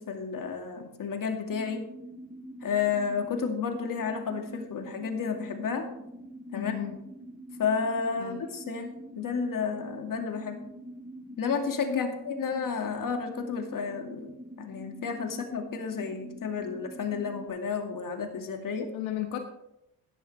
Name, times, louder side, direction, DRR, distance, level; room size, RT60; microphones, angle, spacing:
voice 1, 0.0-1.8 2.6-5.9 6.5-6.7 7.6-10.6 11.4-18.9, left 6 dB, 45° left, 4 dB, 2.4 m, -31 dB
sound 1, 1.4-17.5, right 1 dB, 5° right, 4.9 m, -45 dB
voice 2, 6.5-6.9 8.2-8.4 11.9-12.0 18.9-19.4, left 13 dB, 90° left, 6 dB, 1.3 m, -34 dB
15.5 x 11.5 x 3.5 m, 0.85 s
supercardioid pair, 85°, 44 cm